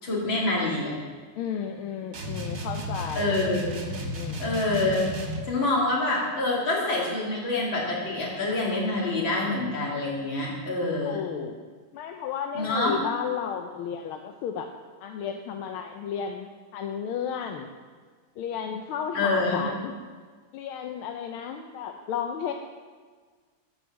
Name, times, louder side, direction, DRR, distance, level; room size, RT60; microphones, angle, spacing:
voice 1, 0.0-0.9 3.1-3.8 4.4-5.1 5.5-11.2 12.5-12.9 19.1-19.6, left 2 dB, 60° left, -4 dB, 3.4 m, -26 dB
voice 2, 1.4-3.4 4.1-4.5 11.0-11.5 11.9-14.7 15.0-17.7 18.4-19.9 20.5-22.5, left 7 dB, 80° left, 5 dB, 1.5 m, -33 dB
sound 1, 2.1-5.5, equal, 45° right, 1.9 m, -33 dB
12.0 x 5.9 x 7.3 m, 1.5 s
omnidirectional pair, 2.4 m